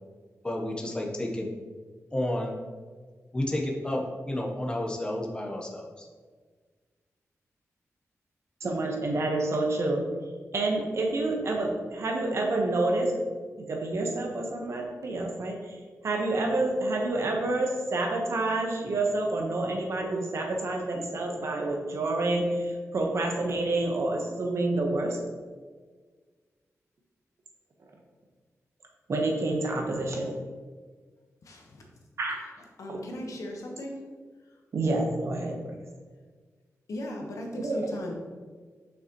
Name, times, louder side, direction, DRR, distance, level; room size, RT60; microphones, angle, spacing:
voice 1, 0.4-1.5 2.1-2.6 3.3-6.1, left 1 dB, 15° left, 0 dB, 0.8 m, -31 dB
voice 2, 8.6-10.1 10.5-13.2 13.7-25.2 29.1-30.3 32.2-32.3 34.7-35.7 37.6-37.9, right 2 dB, 60° right, 0 dB, 1.1 m, -28 dB
voice 3, 31.4-31.8 32.8-34.0 36.9-38.2, left 1 dB, 80° left, 0 dB, 1.1 m, -37 dB
6.8 x 5.7 x 3.0 m, 1.5 s
wide cardioid pair, 145°, 5 cm